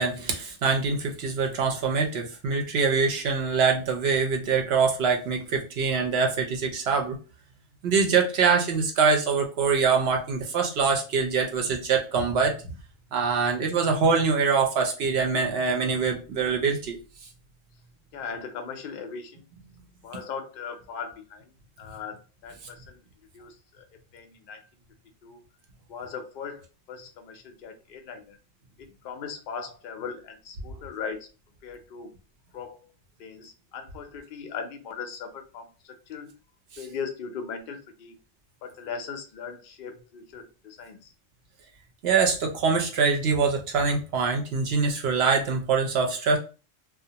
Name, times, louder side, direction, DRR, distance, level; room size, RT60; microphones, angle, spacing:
voice 1, 0.0-7.2 7.8-12.7 13.1-17.0 42.0-46.4, right 5 dB, 60° right, 2 dB, 0.7 m, -24 dB
voice 2, 18.1-19.5 20.0-21.5 21.8-23.0 23.3-23.8 24.1-24.7 25.2-25.4 25.9-28.4 28.8-31.3 31.6-32.1 32.5-32.9 33.2-36.4 36.8-38.2 38.6-41.0, left 6 dB, 60° left, 5 dB, 0.6 m, -39 dB
2.4 x 2.1 x 2.7 m, 0.33 s
omnidirectional pair, 1.3 m